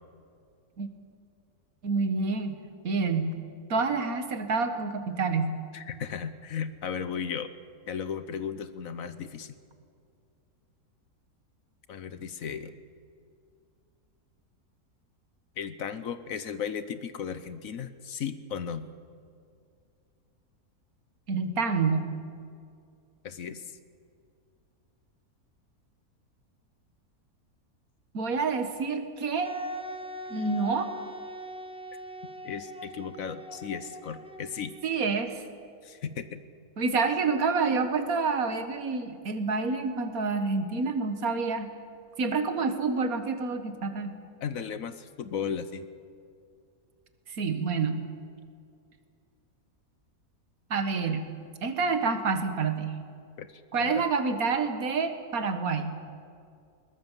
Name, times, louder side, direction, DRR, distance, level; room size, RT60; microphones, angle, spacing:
voice 1, 1.8-2.6 2.8-3.3 3.7-5.5 21.3-22.1 28.1-29.5 30.3-30.9 34.8-35.4 36.8-41.7 42.2-44.1 47.3-48.1 50.7-51.3 51.6-53.0 53.7-55.9, right 4 dB, 65° right, 8 dB, 2.0 m, -28 dB
voice 2, 5.7-7.5 7.9-9.6 11.9-12.8 15.6-18.9 23.2-23.7 32.4-34.7 35.8-36.4 44.4-45.8 53.4-54.0, left 7 dB, 65° left, 12 dB, 1.3 m, -35 dB
Wind instrument woodwind instrument, 29.4-35.0, left 1 dB, 5° right, 0.7 m, -41 dB
21.0 x 20.0 x 7.4 m, 2.3 s
omnidirectional pair, 1.6 m